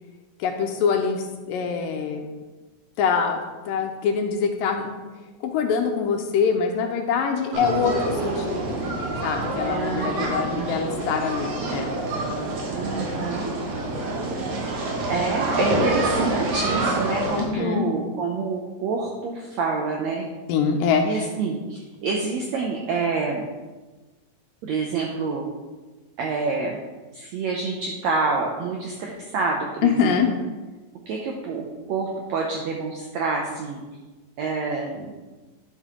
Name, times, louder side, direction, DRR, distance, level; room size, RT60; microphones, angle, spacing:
voice 1, 0.4-2.3 3.0-4.9 5.4-8.6 9.2-11.9 17.4-17.9 20.5-21.3 29.8-30.3, left 6 dB, 80° left, 4 dB, 2.2 m, -24 dB
sound 1, 7.5-17.4, right 2 dB, 70° right, 3.0 m, -27 dB
voice 2, 9.7-10.9 12.7-13.4 15.1-20.3 21.0-23.5 24.6-25.4 26.2-26.8 27.1-30.2 31.1-33.8 34.4-35.2, right 4 dB, 85° right, 0 dB, 1.5 m, -27 dB
11.0 x 5.5 x 3.7 m, 1.2 s
omnidirectional pair, 4.1 m